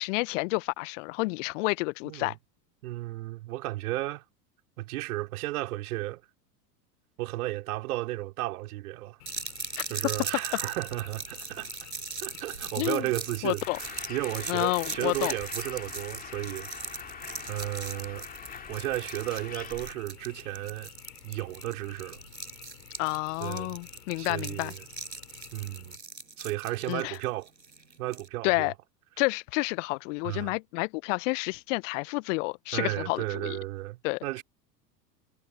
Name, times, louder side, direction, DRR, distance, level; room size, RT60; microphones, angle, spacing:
voice 1, 0.0-2.3 9.8-9.9 12.8-13.1 13.4-13.8 14.5-15.3 23.0-24.7 26.9-27.2 28.4-28.7 29.2-33.6 34.0-34.4, left 27 dB, 45° left, 1.1 m, -30 dB
voice 2, 2.8-4.2 4.8-6.2 7.2-9.2 9.9-11.7 12.2-16.7 17.0-17.2 17.5-18.3 18.7-20.9 21.2-22.2 23.4-23.8 24.2-24.8 25.5-26.0 26.4-27.5 28.0-28.7 30.2-30.5 32.7-34.4, right 17 dB, 60° right, 5.0 m, -34 dB
Frog, 9.2-26.0, left 13 dB, 65° left, 4.5 m, -52 dB
sound 1, 9.3-28.3, right 4 dB, 85° right, 7.1 m, -40 dB
Bird, 13.6-19.9, left 6 dB, 15° left, 2.5 m, -43 dB
figure-of-eight pair, 85°, 50 cm